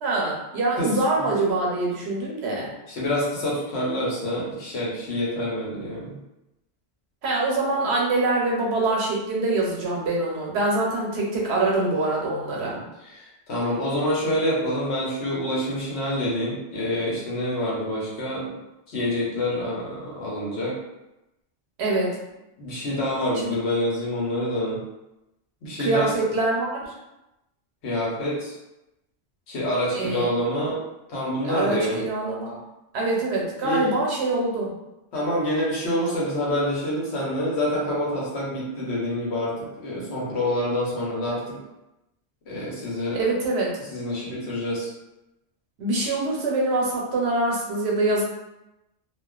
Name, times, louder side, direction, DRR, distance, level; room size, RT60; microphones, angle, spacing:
voice 1, 0.0-2.7 7.2-12.8 21.8-22.2 23.3-23.5 25.8-26.9 29.9-30.3 31.4-32.6 32.9-34.7 43.1-43.7 45.8-48.2, right 2 dB, 80° right, -3 dB, 0.9 m, -24 dB
voice 2, 2.9-6.2 12.6-18.5 18.9-20.8 22.6-24.8 25.6-26.1 27.8-28.6 29.5-30.8 31.1-32.0 33.6-33.9 35.1-41.6 42.5-43.2 43.9-44.9, left 1 dB, 90° left, -5 dB, 1.1 m, -27 dB
2.4 x 2.3 x 2.3 m, 0.94 s
omnidirectional pair, 1.1 m